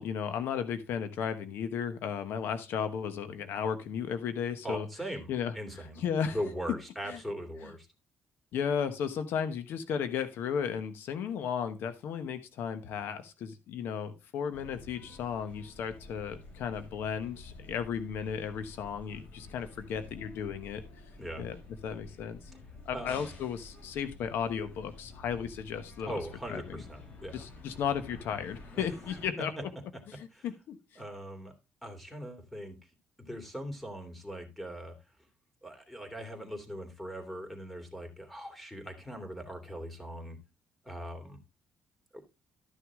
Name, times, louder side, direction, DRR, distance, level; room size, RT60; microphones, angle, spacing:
voice 1, 0.0-4.9 5.3-5.5 6.0-6.4 7.1-7.2 8.5-20.8 21.3-21.6 21.8-22.4 22.9-26.2 26.5-26.8 27.3-29.5 30.1-30.8, left 7 dB, 80° left, 10 dB, 1.1 m, -34 dB
voice 2, 4.6-6.0 6.3-7.9 21.2-21.5 22.9-23.3 26.0-27.5 28.7-28.9 29.4-29.5 29.9-30.0 30.3-30.5 31.0-31.5 31.8-32.8 33.2-35.0 35.6-40.4 40.8-41.4 42.1-42.2, equal, 5° left, 5 dB, 2.8 m, -40 dB
sound 1, 14.5-29.3, left 2 dB, 55° left, 6.8 m, -50 dB
13.0 x 6.4 x 3.6 m, 0.26 s
cardioid pair, 95°, 4 cm